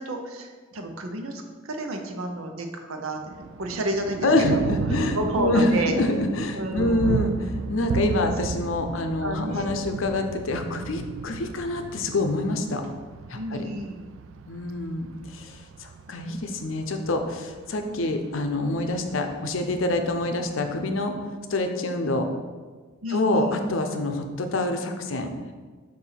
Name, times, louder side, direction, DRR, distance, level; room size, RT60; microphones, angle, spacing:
voice 1, 0.0-4.8 5.1-6.0 6.5-7.2 8.9-9.8 13.3-14.1 23.0-23.6, right 1 dB, 85° right, 4 dB, 0.8 m, -31 dB
Thunder, 3.2-21.2, right 5 dB, 65° right, 0.3 m, -35 dB
voice 2, 4.2-7.3 7.7-12.8 13.3-13.7 14.5-21.1 21.5-22.3 23.1-25.3, left 2 dB, 70° left, 6 dB, 0.6 m, -26 dB
6.9 x 2.7 x 5.7 m, 1.4 s
head